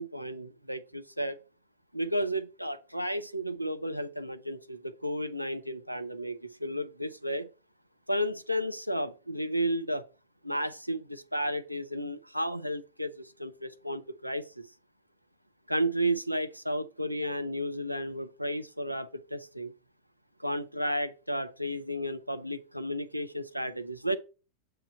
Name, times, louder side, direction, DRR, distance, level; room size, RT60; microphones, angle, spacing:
voice 1, 0.0-1.4 1.9-7.5 8.1-10.0 10.4-14.4 15.7-19.7 20.4-24.2, equal, 90° right, 0.4 m, -33 dB
7.5 x 3.1 x 6.0 m
figure-of-eight pair, 90°, 0 cm